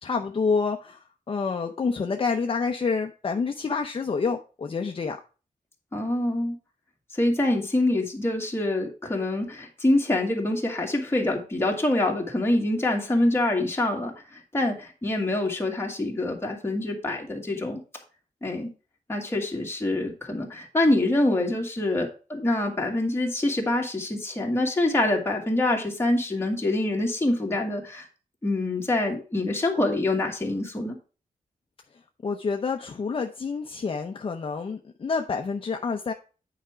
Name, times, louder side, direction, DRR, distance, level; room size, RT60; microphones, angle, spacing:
voice 1, 0.0-5.2 32.2-36.1, left 5 dB, 40° left, 4 dB, 0.7 m, -28 dB
voice 2, 5.9-6.6 7.1-17.8 18.4-18.7 19.1-28.0 28.4-31.0, left 1 dB, 20° left, 0 dB, 2.1 m, -25 dB
9.3 x 5.0 x 4.4 m, 0.34 s
wide cardioid pair, 140°, 14 cm